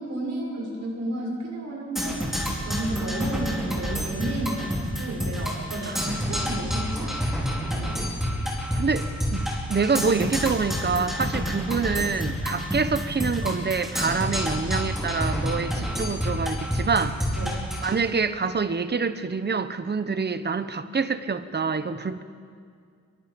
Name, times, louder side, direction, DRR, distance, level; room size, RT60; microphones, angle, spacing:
voice 1, 0.0-2.3 2.6-8.0 17.3-17.7, right 1 dB, 70° right, -1 dB, 6.5 m, -32 dB
Percussion, 2.0-17.9, equal, ahead, 4.9 m, -28 dB
voice 2, 8.7-17.2 17.8-22.2, right 5 dB, 35° right, 12 dB, 1.0 m, -26 dB
27.5 x 24.5 x 5.3 m, 2.2 s
wide cardioid pair, 150°, 29 cm